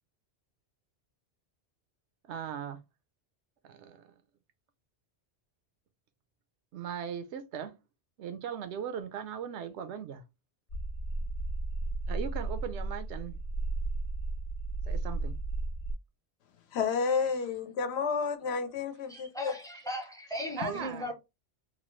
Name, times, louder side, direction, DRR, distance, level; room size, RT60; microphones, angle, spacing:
voice 1, 2.3-2.8 3.6-4.0 6.7-7.7 8.2-10.2 12.1-13.4 14.8-15.3 20.6-21.1, right 8 dB, 80° right, 0.9 m, -38 dB
sound 1, 10.7-15.9, right 2 dB, 45° left, 0.8 m, -34 dB
voice 2, 16.7-19.6, left 5 dB, 70° left, 0.8 m, -31 dB
voice 3, 19.1-21.1, equal, 5° left, 0.6 m, -37 dB
3.0 x 2.2 x 3.0 m
omnidirectional pair, 1.1 m